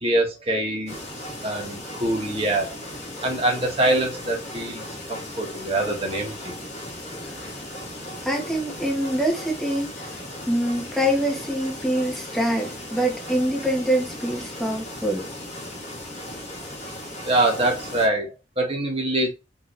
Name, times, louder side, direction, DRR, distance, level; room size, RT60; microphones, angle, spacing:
voice 1, 0.0-1.0 1.4-2.7 3.2-6.5 17.2-19.3, right 1 dB, 30° right, 1.4 m, -24 dB
sound 1, 0.9-18.1, left 1 dB, 40° left, 1.8 m, -37 dB
voice 2, 8.2-10.1 10.5-15.2, equal, ahead, 1.2 m, -25 dB
5.3 x 3.0 x 3.2 m
head